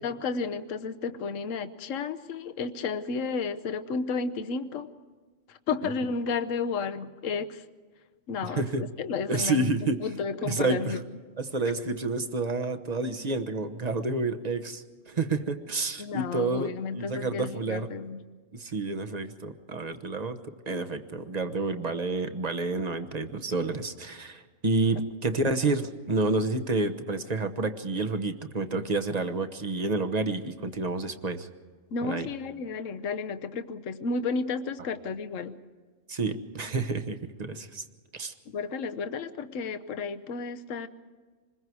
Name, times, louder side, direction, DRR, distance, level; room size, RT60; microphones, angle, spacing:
voice 1, 0.0-4.9 5.5-7.7 8.3-11.0 16.0-18.2 25.4-25.5 31.9-35.6 38.5-40.9, left 4 dB, 75° left, 10 dB, 1.2 m, -32 dB
voice 2, 8.5-8.8 9.3-10.0 10.5-11.0 11.4-17.9 18.5-20.4 20.7-31.5 32.0-32.3 36.1-37.8 38.1-38.3, right 3 dB, 35° right, 8 dB, 1.2 m, -29 dB
26.5 x 21.5 x 4.7 m, 1.5 s
omnidirectional pair, 1.4 m